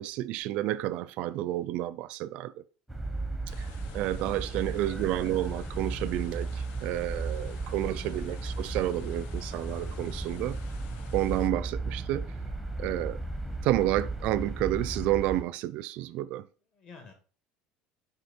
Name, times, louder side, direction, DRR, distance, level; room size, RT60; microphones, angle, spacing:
voice 1, 0.0-2.5 3.5-3.7 3.9-10.6 11.1-12.3 12.8-13.2 13.6-16.4, right 14 dB, 55° right, 0.4 m, -30 dB
sound 1, 2.9-15.4, right 2 dB, 5° left, 0.9 m, -35 dB
sound 2, 3.5-11.5, left 9 dB, 75° left, 0.7 m, -52 dB
voice 2, 4.5-5.0 7.7-8.2 16.7-17.1, left 4 dB, 40° left, 2.2 m, -52 dB
6.5 x 4.9 x 4.3 m
cardioid pair, 155°, 2 cm